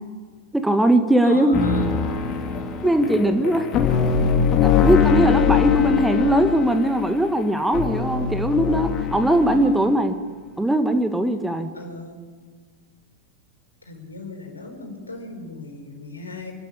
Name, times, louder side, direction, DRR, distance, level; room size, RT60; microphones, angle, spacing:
voice 1, 0.5-1.6 2.8-3.7 4.6-10.1 10.6-11.7, right 1 dB, 5° right, 8 dB, 1.6 m, -20 dB
voice 2, 1.2-2.0 9.4-9.8 11.7-12.2 13.8-16.5, left 2 dB, 80° left, 2 dB, 4.6 m, -36 dB
sound 1, 1.5-9.8, left 7 dB, 35° left, 3.1 m, -22 dB
28.0 x 13.0 x 8.7 m, 1.5 s
figure-of-eight pair, 90°, 0 cm